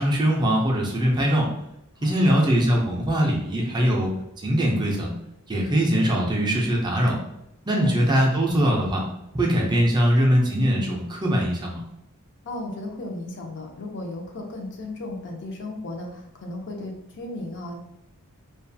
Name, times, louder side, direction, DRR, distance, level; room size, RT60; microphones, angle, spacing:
voice 1, 0.0-1.5 2.0-4.1 4.4-5.1 5.5-7.2 7.7-9.0 9.3-11.8, equal, 20° right, -1 dB, 0.4 m, -21 dB
voice 2, 2.0-2.3 7.7-8.0 12.5-17.8, left 2 dB, 55° left, 2 dB, 0.5 m, -35 dB
2.3 x 2.3 x 2.6 m, 0.82 s
head